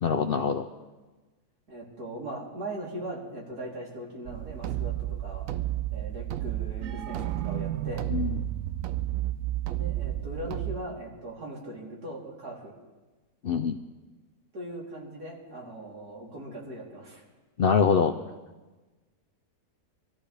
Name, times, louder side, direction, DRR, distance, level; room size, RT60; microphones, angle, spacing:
voice 1, 0.0-0.7 8.1-8.4 13.4-13.8 17.6-18.1, left 6 dB, 65° left, 7 dB, 0.5 m, -24 dB
voice 2, 1.7-4.9 5.2-5.5 5.9-8.1 9.7-12.7 14.5-17.2, right 1 dB, 85° right, -5 dB, 4.0 m, -39 dB
sound 1, 4.2-10.8, right 13 dB, 70° right, 1.0 m, -31 dB
24.5 x 14.0 x 3.4 m, 1.2 s
omnidirectional pair, 1.6 m